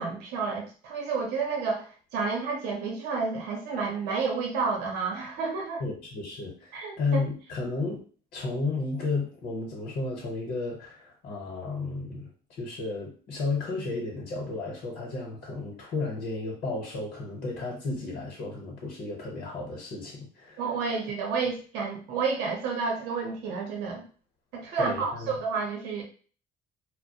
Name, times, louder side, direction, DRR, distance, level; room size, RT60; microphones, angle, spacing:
voice 1, 0.0-5.8 6.7-7.2 20.6-24.0 24.5-26.0, right 4 dB, 90° right, -1 dB, 0.7 m, -30 dB
voice 2, 5.8-8.0 8.3-20.6 24.8-25.3, left 3 dB, 60° left, -2 dB, 0.8 m, -33 dB
2.3 x 2.0 x 2.7 m, 0.40 s
cardioid pair, 110°, 17 cm